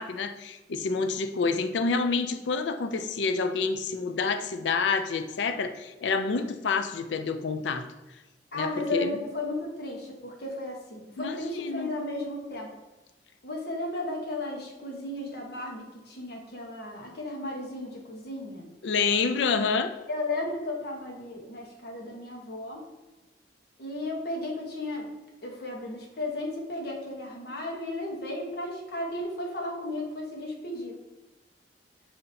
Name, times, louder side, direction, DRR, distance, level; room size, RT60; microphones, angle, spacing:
voice 1, 0.0-7.9 8.5-9.1 11.2-11.9 18.8-19.9, left 4 dB, 80° left, 9 dB, 0.4 m, -28 dB
voice 2, 8.5-12.7 13.4-18.7 20.1-22.8 23.8-25.1 25.4-31.0, left 2 dB, 60° left, 0 dB, 1.1 m, -34 dB
6.7 x 2.8 x 2.7 m, 1.1 s
head